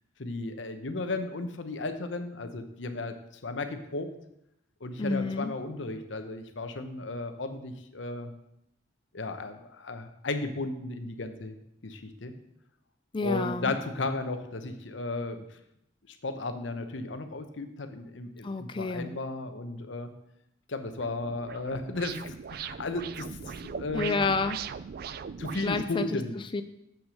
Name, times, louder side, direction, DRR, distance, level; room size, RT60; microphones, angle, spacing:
voice 1, 0.2-3.2 3.4-4.1 4.8-8.3 9.1-11.5 11.8-12.3 13.2-15.6 16.1-20.1 20.7-24.2 25.4-26.4, left 2 dB, 80° left, 8 dB, 0.9 m, -35 dB
voice 2, 5.0-5.5 13.1-13.7 18.4-19.1 23.9-24.6 25.6-26.6, left 3 dB, 25° left, 9 dB, 0.4 m, -30 dB
sound 1, 20.9-25.8, right 7 dB, 55° right, 0.3 m, -40 dB
7.3 x 6.0 x 6.4 m, 0.81 s
head